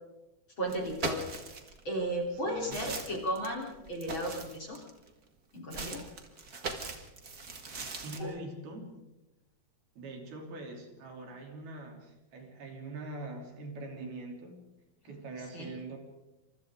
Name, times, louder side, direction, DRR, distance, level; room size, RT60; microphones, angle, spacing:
voice 1, 0.6-1.2 1.8-4.8 5.5-6.0 8.2-8.3 15.5-15.7, right 1 dB, 30° left, -1 dB, 4.1 m, -34 dB
sound 1, 0.7-1.8 2.3-5.1 5.7-8.2, right 3 dB, 40° right, 1.4 m, -40 dB
voice 2, 2.3-2.9 7.9-9.0 10.0-14.7 15.0-16.0, right 2 dB, 65° right, 2 dB, 5.1 m, -43 dB
29.0 x 27.0 x 3.8 m, 0.99 s
omnidirectional pair, 4.7 m